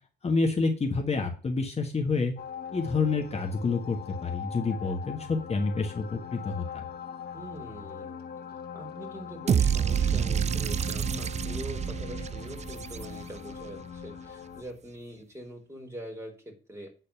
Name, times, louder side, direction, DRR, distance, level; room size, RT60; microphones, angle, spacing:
voice 1, 0.2-2.3 2.7-6.8, left 4 dB, 30° left, 3 dB, 1.5 m, -28 dB
sound 1, 2.4-14.6, left 7 dB, 55° left, 1.6 m, -41 dB
voice 2, 7.3-8.2 8.7-16.9, equal, 15° right, 1 dB, 3.6 m, -43 dB
sound 2, 9.5-13.6, right 8 dB, 35° right, 0.4 m, -28 dB
8.7 x 4.1 x 6.8 m, 0.37 s
cardioid pair, 90°, 20 cm